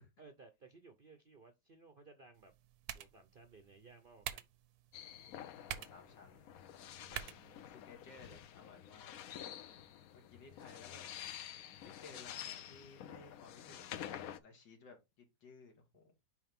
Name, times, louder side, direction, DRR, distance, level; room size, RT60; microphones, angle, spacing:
voice 1, 0.2-2.5 2.9-4.5 7.0-7.9 9.6-9.9, right 3 dB, 50° right, 0.6 m, -60 dB
sound 1, 2.3-8.3, right 10 dB, 65° right, 1.1 m, -49 dB
sound 2, 4.9-14.4, left 10 dB, 65° left, 0.9 m, -49 dB
voice 2, 5.5-6.4 7.6-9.1 10.1-11.1 11.8-16.1, left 4 dB, 85° left, 2.6 m, -58 dB
9.7 x 3.3 x 3.5 m
omnidirectional pair, 1.9 m